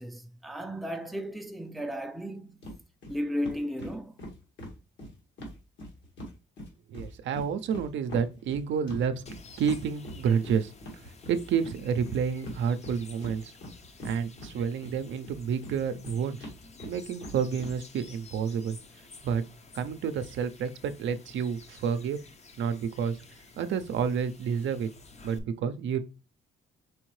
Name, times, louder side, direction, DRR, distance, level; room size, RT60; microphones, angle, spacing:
voice 1, 0.0-2.7 3.1-4.2, equal, ahead, 0.5 m, -35 dB
sound 1, 2.6-2.8 3.0-3.2 3.4-6.3 6.6-14.9 15.2-17.7, equal, 70° left, 1.9 m, -42 dB
voice 2, 6.9-9.2 9.6-13.5 14.0-16.5 16.8-18.8 19.2-19.4 19.7-22.2 22.6-23.2 23.6-24.9 25.2-26.0, right 7 dB, 70° right, 0.6 m, -29 dB
sound 2, 9.3-25.4, left 4 dB, 35° left, 0.7 m, -52 dB
4.7 x 3.5 x 3.2 m
cardioid pair, 90°, 20 cm